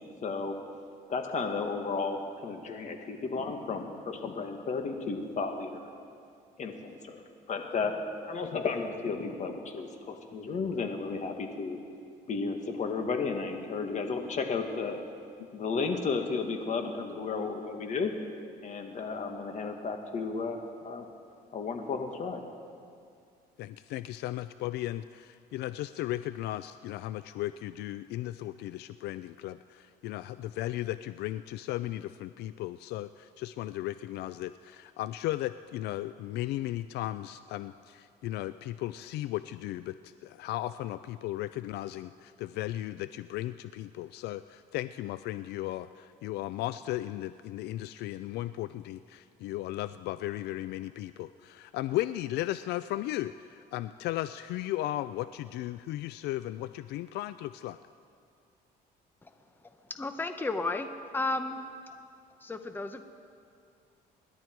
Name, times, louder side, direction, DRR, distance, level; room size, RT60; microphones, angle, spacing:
voice 1, 0.2-0.5 1.1-5.8 6.6-7.2 7.5-7.9 8.3-11.8 12.3-15.0 15.5-18.1 18.6-21.1 21.5-22.4, left 4 dB, 45° left, 4 dB, 1.8 m, -33 dB
voice 2, 23.6-57.8, left 15 dB, 75° left, 13 dB, 0.4 m, -36 dB
voice 3, 60.0-60.9 61.1-61.6 62.4-63.0, left 2 dB, 10° left, 8 dB, 0.8 m, -32 dB
27.0 x 11.5 x 4.6 m, 2.4 s
cardioid pair, 110°, 17 cm